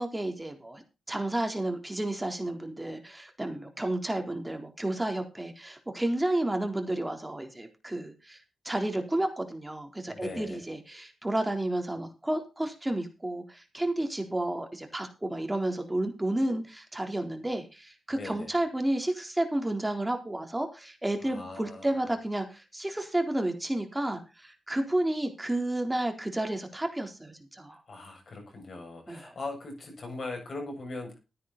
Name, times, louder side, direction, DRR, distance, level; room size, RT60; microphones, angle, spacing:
voice 1, 0.0-8.4 8.6-27.8 29.1-29.3, right 1 dB, 15° right, 4 dB, 4.0 m, -31 dB
voice 2, 10.1-10.6 18.1-18.6 21.2-22.0 27.9-31.2, left 3 dB, 55° left, 3 dB, 7.2 m, -40 dB
13.5 x 10.0 x 4.3 m, 0.29 s
cardioid pair, 55°, 0 cm